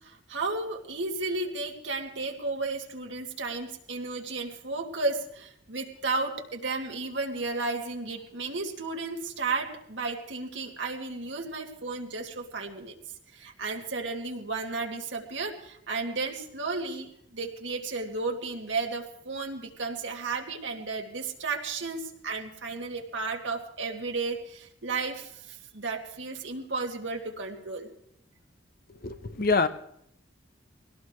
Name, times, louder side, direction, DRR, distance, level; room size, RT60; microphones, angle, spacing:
voice 1, 0.0-12.9 13.3-27.9, right 3 dB, 75° right, 2 dB, 2.3 m, -33 dB
voice 2, 28.9-29.7, left 4 dB, 50° left, 10 dB, 0.9 m, -26 dB
23.0 x 18.0 x 3.2 m, 0.72 s
head